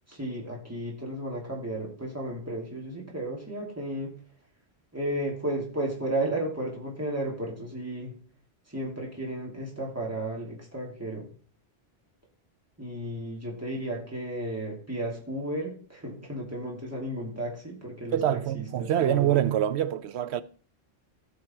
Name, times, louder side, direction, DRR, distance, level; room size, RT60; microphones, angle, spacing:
voice 1, 0.1-4.2 4.9-8.2 8.7-11.3 12.8-19.3, right 1 dB, 15° right, 2.9 m, -33 dB
voice 2, 18.1-20.4, right 11 dB, 80° right, 0.9 m, -25 dB
16.0 x 5.7 x 4.5 m
omnidirectional pair, 1.1 m